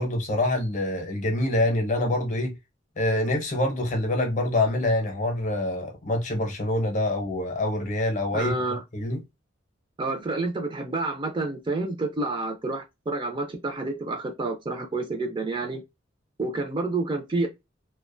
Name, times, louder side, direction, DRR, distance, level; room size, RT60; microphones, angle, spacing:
voice 1, 0.0-2.5 3.0-8.5 8.9-9.2, left 1 dB, 40° left, 0.7 m, -25 dB
voice 2, 8.3-8.8 10.0-15.8 16.4-17.5, right 2 dB, 25° right, 0.4 m, -29 dB
2.4 x 2.2 x 2.5 m
head